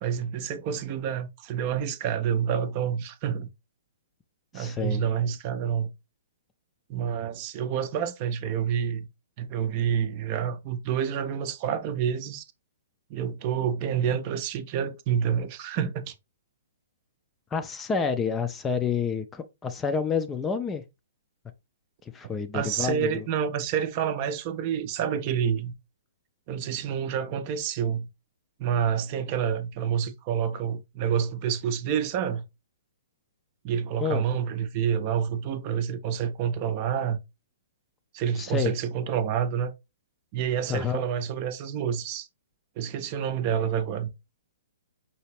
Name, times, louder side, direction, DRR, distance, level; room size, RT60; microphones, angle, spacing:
voice 1, 0.0-3.5 4.5-5.9 6.9-9.1 9.4-12.4 13.1-16.1 22.5-25.7 26.5-28.1 28.6-32.4 33.6-37.2 38.1-39.7 40.3-42.3 42.8-44.1, right 8 dB, 35° right, 0.5 m, -28 dB
voice 2, 4.5-5.0 17.5-20.8 22.1-23.2 34.0-34.3 38.4-38.7 40.7-41.1, left 6 dB, 15° left, 0.4 m, -29 dB
5.7 x 2.8 x 3.0 m
figure-of-eight pair, 115°, 0 cm